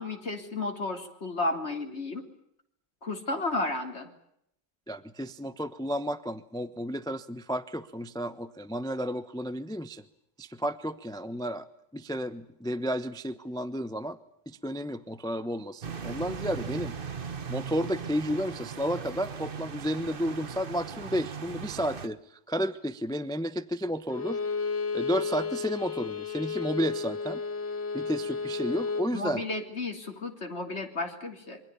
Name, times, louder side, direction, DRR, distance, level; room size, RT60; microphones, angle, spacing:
voice 1, 0.0-2.3 3.0-4.1 29.1-31.6, left 2 dB, 35° left, 4 dB, 3.9 m, -33 dB
voice 2, 4.9-10.0 10.4-11.7 11.9-14.2 14.5-16.9 17.5-24.4 24.9-27.4 27.9-29.4, equal, 5° left, 13 dB, 0.7 m, -32 dB
sound 1, 15.8-22.1, right 6 dB, 35° right, 1.1 m, -38 dB
Bowed string instrument, 24.1-29.1, left 5 dB, 85° left, 2.9 m, -32 dB
27.0 x 24.5 x 7.1 m, 0.74 s
omnidirectional pair, 1.9 m